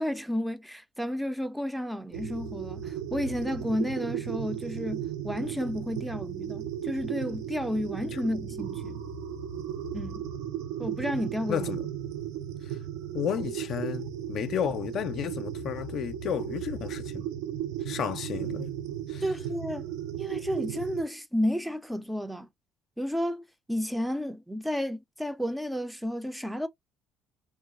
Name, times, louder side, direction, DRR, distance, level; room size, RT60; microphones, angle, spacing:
voice 1, 0.0-9.0 9.9-10.2 10.8-11.7 19.2-19.9 20.2-22.5 23.0-26.7, equal, 5° right, 0.4 m, -32 dB
sound 1, 2.1-21.0, right 9 dB, 80° right, 0.5 m, -35 dB
voice 2, 11.5-11.9 12.6-12.8 13.1-17.3 17.8-18.7 19.1-19.2, left 9 dB, 60° left, 0.4 m, -32 dB
2.9 x 2.3 x 2.3 m
supercardioid pair, 80°, 0 cm